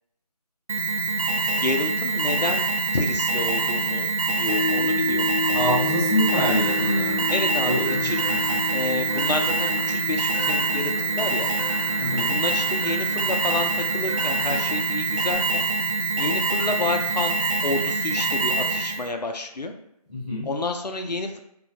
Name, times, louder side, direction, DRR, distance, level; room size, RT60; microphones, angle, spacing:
Alarm, 0.7-19.1, right 3 dB, 55° right, 0.4 m, -25 dB
voice 1, 1.5-2.7 2.9-5.6 7.3-8.2 8.7-11.5 12.3-15.6 16.2-17.3 17.6-19.7 20.4-21.4, left 2 dB, 90° left, 4 dB, 0.5 m, -29 dB
sound 1, 4.4-16.0, left 2 dB, 45° left, 0.6 m, -32 dB
voice 2, 5.5-7.2 7.6-8.6 12.0-12.3 20.1-20.5, equal, 10° left, -15 dB, 0.9 m, -26 dB
sound 2, 6.4-15.3, left 1 dB, 40° right, 0.8 m, -40 dB
2.4 x 2.1 x 3.6 m, 0.80 s
figure-of-eight pair, 165°, 20 cm